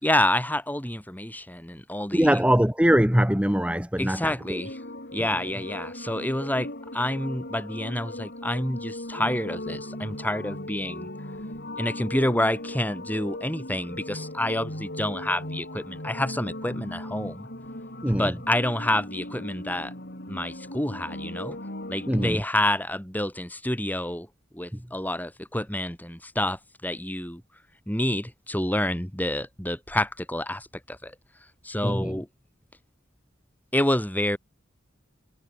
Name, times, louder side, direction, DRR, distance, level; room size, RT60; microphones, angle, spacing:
voice 1, 0.0-2.4 4.0-4.8 5.1-11.1 11.8-17.5 18.1-19.9 20.3-21.6 21.9-24.3 24.5-27.4 27.9-31.2 31.6-32.3 33.7-34.4, left 1 dB, 10° left, 5.3 m, -28 dB
voice 2, 2.1-4.6 18.0-18.3 22.1-22.4 24.7-24.8 31.8-32.2, equal, 5° right, 1.5 m, -22 dB
sound 1, 4.4-22.3, left 1 dB, 55° left, 6.8 m, -38 dB
head